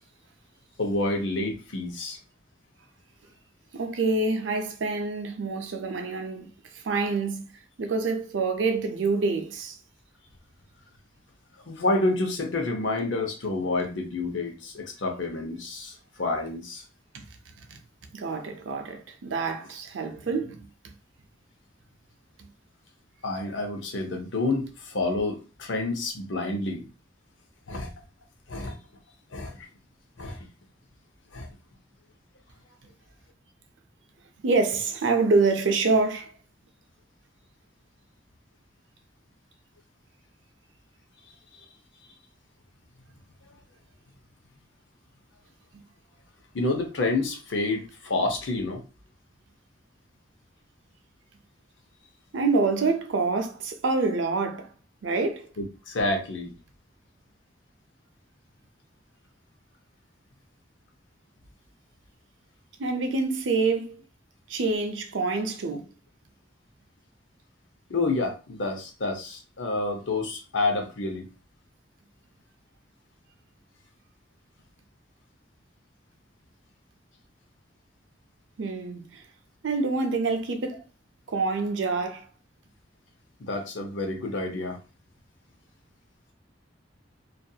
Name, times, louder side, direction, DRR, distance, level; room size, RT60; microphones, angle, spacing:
voice 1, 0.8-2.2 11.7-16.8 23.2-26.9 27.7-27.9 28.5-28.8 29.3-29.7 30.2-30.4 31.3-31.5 43.4-43.5 46.5-48.8 55.6-56.5 67.9-71.3 83.4-84.8, left 2 dB, 85° left, 0.7 m, -29 dB
voice 2, 3.7-7.4 7.8-9.8 17.7-17.8 18.1-20.7 34.4-36.3 52.3-54.7 55.0-55.5 62.8-64.0 64.5-65.9 78.6-79.2 79.6-80.8 81.3-82.3, right 3 dB, 80° right, 0.5 m, -26 dB
2.7 x 2.5 x 2.3 m
head